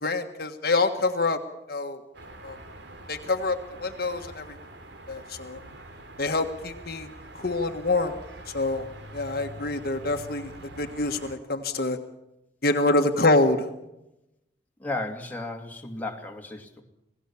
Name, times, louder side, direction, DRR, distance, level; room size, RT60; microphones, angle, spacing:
voice 1, 0.0-1.4 1.7-2.0 2.4-2.6 3.1-4.5 5.1-5.6 6.2-7.1 7.3-8.1 8.5-8.9 9.1-12.0 12.6-13.7, left 2 dB, 55° left, 5 dB, 1.6 m, -26 dB
sound 1, 2.1-11.4, right 1 dB, 70° right, 3.2 m, -45 dB
voice 2, 14.8-16.8, left 2 dB, 10° left, 1 dB, 2.5 m, -34 dB
27.5 x 17.5 x 7.2 m, 0.90 s
head